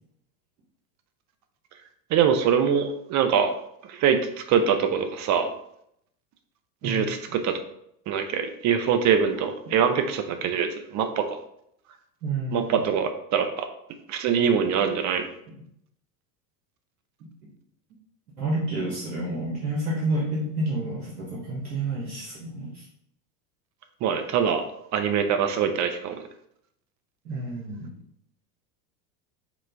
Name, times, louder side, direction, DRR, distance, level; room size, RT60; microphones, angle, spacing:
voice 1, 2.1-3.6 3.9-4.2 4.5-5.5 6.8-7.2 7.4-7.6 8.1-11.4 12.5-13.6 14.1-15.3 24.0-24.6 24.9-26.1, right 7 dB, 35° right, 7 dB, 0.6 m, -23 dB
voice 2, 12.2-12.8 17.2-17.3 18.4-22.8 27.2-27.9, right 2 dB, 90° right, -5 dB, 1.2 m, -29 dB
4.9 x 2.4 x 3.4 m, 0.74 s
hypercardioid pair, 80°, 50 cm